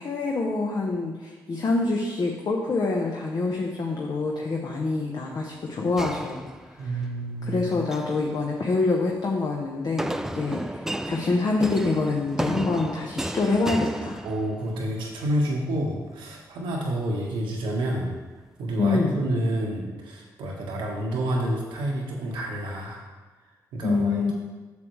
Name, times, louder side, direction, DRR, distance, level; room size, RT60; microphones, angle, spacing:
voice 1, 0.0-6.5 6.8-7.0 7.4-14.2 18.8-19.2 23.8-24.3, left 3 dB, 55° left, -1 dB, 0.9 m, -26 dB
sound 1, 6.0-7.0 7.7-8.2 10.0-14.8, right 1 dB, 5° right, 0.4 m, -33 dB
voice 2, 6.8-7.7 14.2-18.1 18.6-23.0 23.7-24.3, right 1 dB, 90° right, -1 dB, 1.3 m, -29 dB
8.4 x 6.4 x 3.2 m, 1.3 s
supercardioid pair, 55°, 8 cm